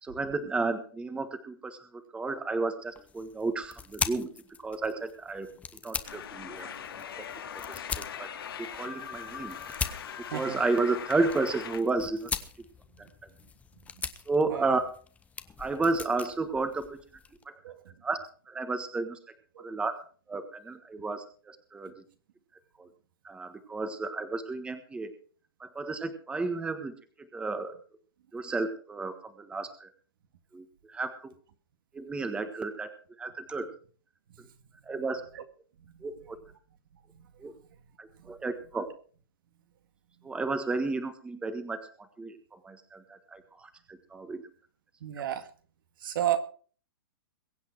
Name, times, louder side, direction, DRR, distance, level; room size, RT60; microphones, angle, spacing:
voice 1, 0.0-4.3 4.6-5.5 5.8-7.3 7.7-8.3 8.6-9.6 10.3-12.3 13.0-13.1 14.3-14.8 15.6-17.0 17.5-17.6 18.0-18.2 18.5-19.2 19.6-19.9 20.3-21.9 22.8-22.9 23.2-25.1 25.6-27.8 28.3-29.9 30.5-31.3 31.9-33.7 34.8-35.2 36.0-36.4 37.4-37.5 38.0-38.9 40.2-41.9 42.2-42.4 42.6-44.4, right 3 dB, 10° right, 9 dB, 1.4 m, -32 dB
sound 1, 2.9-17.4, left 6 dB, 10° left, 0.9 m, -41 dB
sound 2, 6.0-11.8, left 8 dB, 75° left, 2.7 m, -41 dB
voice 2, 17.6-17.9 19.6-19.8 35.3-35.4 35.8-36.0 37.2-37.3 38.2-38.3 45.0-45.5 46.0-46.4, right 12 dB, 65° right, 8 dB, 2.0 m, -33 dB
22.5 x 8.3 x 4.7 m, 0.42 s
hypercardioid pair, 135°, 12 cm